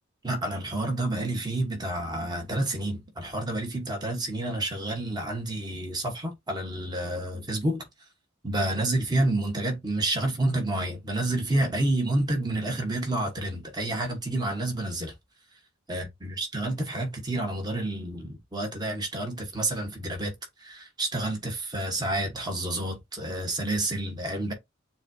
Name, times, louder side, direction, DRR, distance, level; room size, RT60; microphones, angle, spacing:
voice 1, 0.2-7.8 8.4-15.1 15.9-20.3 20.6-24.5, right 1 dB, 20° right, 1.1 m, -29 dB
7.0 x 2.3 x 2.6 m
head